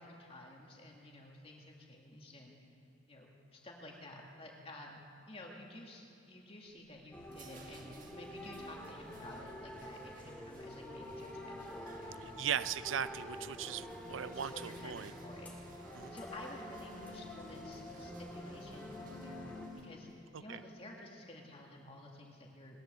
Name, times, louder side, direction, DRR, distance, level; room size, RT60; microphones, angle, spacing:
voice 1, 0.0-2.6 3.1-5.0 5.3-12.3 14.3-15.6 16.1-22.8, left 1 dB, 30° left, 0 dB, 2.1 m, -52 dB
sound 1, 6.7-20.2, right 3 dB, 40° right, 1.5 m, -60 dB
sound 2, 7.1-19.7, left 1 dB, 10° left, 1.9 m, -47 dB
voice 2, 12.4-15.1 15.9-16.2 20.5-20.6, right 9 dB, 75° right, 14 dB, 0.5 m, -38 dB
19.5 x 11.0 x 6.8 m, 2.9 s
head